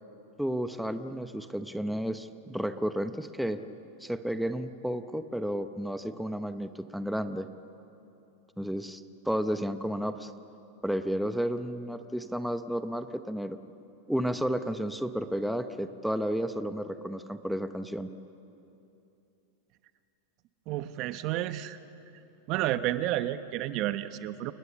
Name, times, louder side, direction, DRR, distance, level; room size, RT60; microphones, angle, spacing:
voice 1, 0.4-3.6 4.0-7.5 8.6-10.3 10.8-13.6 14.1-18.1, equal, ahead, 9 dB, 0.8 m, -32 dB
voice 2, 20.7-21.8 22.5-24.5, right 14 dB, 45° right, 12 dB, 0.9 m, -31 dB
28.5 x 20.0 x 7.3 m, 2.9 s
supercardioid pair, 135°, 0 cm